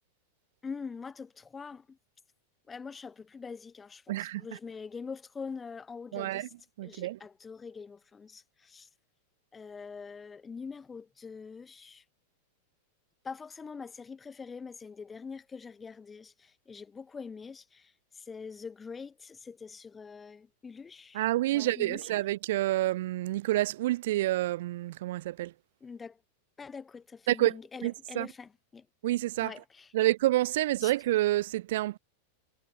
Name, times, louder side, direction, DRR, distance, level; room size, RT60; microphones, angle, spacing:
voice 1, 0.6-2.0 2.7-6.5 6.8-8.9 9.5-12.0 13.2-22.1 25.8-26.2 26.6-28.9 29.4-29.9 30.8-30.9, left 5 dB, 15° left, 4.6 m, -44 dB
voice 2, 4.1-4.4 6.1-6.5 6.8-7.2 21.1-25.5 27.3-27.5 27.8-28.3 29.0-29.5 29.9-32.0, right 16 dB, 65° right, 1.9 m, -28 dB
supercardioid pair, 150°, 0 cm